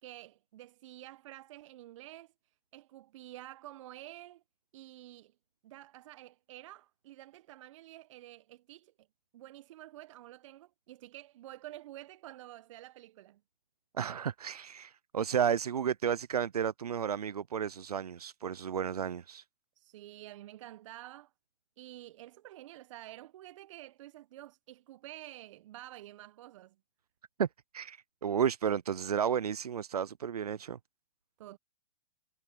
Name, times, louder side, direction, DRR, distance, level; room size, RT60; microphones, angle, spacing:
voice 1, 0.0-2.3 2.7-4.4 4.7-5.3 5.6-8.9 9.3-13.4 19.8-21.3 21.8-26.7 31.4-31.6, right 15 dB, 55° right, 1.3 m, -50 dB
voice 2, 13.9-19.4 27.4-27.5 27.7-30.8, right 8 dB, 80° right, 0.7 m, -32 dB
hypercardioid pair, 115°, 19 cm